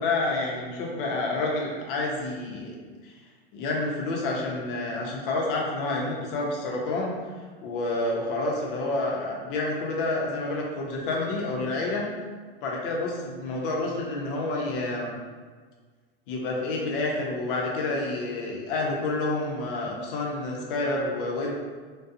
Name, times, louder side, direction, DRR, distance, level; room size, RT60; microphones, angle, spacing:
voice 1, 0.0-2.7 3.0-3.1 3.5-7.1 7.6-12.0 12.6-15.1 16.3-21.5, left 2 dB, 60° left, -1 dB, 0.7 m, -29 dB
2.5 x 2.3 x 2.6 m, 1.5 s
hypercardioid pair, 95°, 30 cm